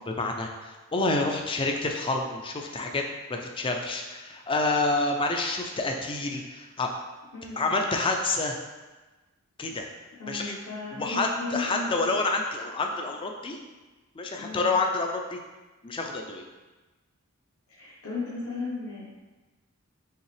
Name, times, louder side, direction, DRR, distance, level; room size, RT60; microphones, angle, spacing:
voice 1, 0.1-3.0 3.3-6.9 7.6-8.6 9.6-9.9 10.3-10.6 10.9-13.6 14.1-15.4 15.8-16.4, left 3 dB, 25° left, 2 dB, 0.4 m, -28 dB
voice 2, 7.3-7.9 10.2-11.9 14.3-14.7 17.7-19.0, left 3 dB, 70° left, -9 dB, 1.0 m, -35 dB
5.4 x 2.8 x 3.2 m, 1.2 s
head